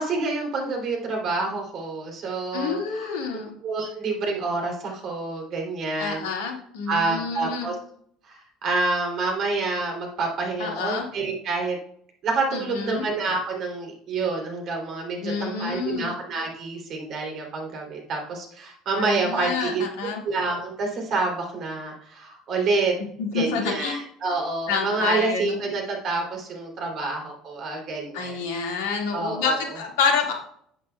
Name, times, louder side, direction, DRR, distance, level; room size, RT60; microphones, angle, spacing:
voice 1, 0.0-3.1 3.6-6.3 6.9-7.7 8.2-11.8 12.2-19.8 20.2-22.9 23.3-28.4 29.1-29.8, right 3 dB, 50° right, 1 dB, 3.0 m, -28 dB
voice 2, 2.5-3.5 6.0-7.7 10.6-11.1 12.5-13.0 15.2-16.1 19.0-20.2 23.2-24.0 24.7-25.6 28.1-30.3, left 5 dB, 65° left, 2 dB, 1.9 m, -28 dB
11.5 x 8.6 x 2.3 m, 0.65 s
figure-of-eight pair, 60°, 0 cm